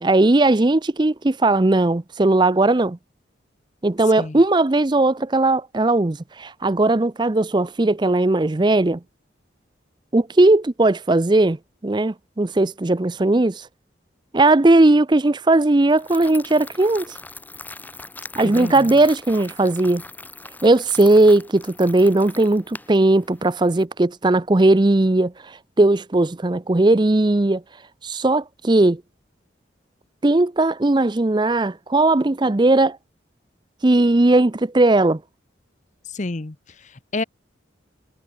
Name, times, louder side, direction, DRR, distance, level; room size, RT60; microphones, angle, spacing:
voice 1, 0.0-3.0 3.8-9.0 10.1-11.6 11.8-13.7 14.3-17.1 18.4-20.0 20.6-27.6 28.0-29.0 30.2-33.0 33.8-35.2, right 2 dB, 25° right, 0.5 m, -18 dB
sound 1, 15.9-23.8, left 3 dB, 10° left, 2.6 m, -41 dB
voice 2, 18.4-18.9 36.1-37.2, left 2 dB, 40° left, 0.9 m, -30 dB
head